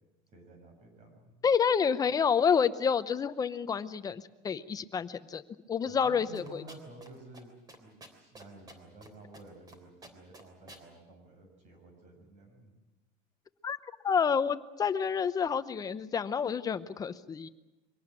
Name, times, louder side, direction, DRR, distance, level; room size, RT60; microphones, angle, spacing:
voice 1, 0.3-1.3 5.9-7.5 7.8-12.7, right 2 dB, 40° right, 4 dB, 6.3 m, -52 dB
voice 2, 1.4-5.4 5.7-6.6 13.6-13.8 14.0-17.5, left 6 dB, 20° left, 12 dB, 0.8 m, -29 dB
sound 1, 6.3-7.1 7.3-7.4 7.7-9.1 9.3-9.8 10.0-10.8, right 2 dB, 20° right, 3.4 m, -50 dB
23.5 x 18.0 x 8.9 m, 1.1 s
cardioid pair, 160°, 18 cm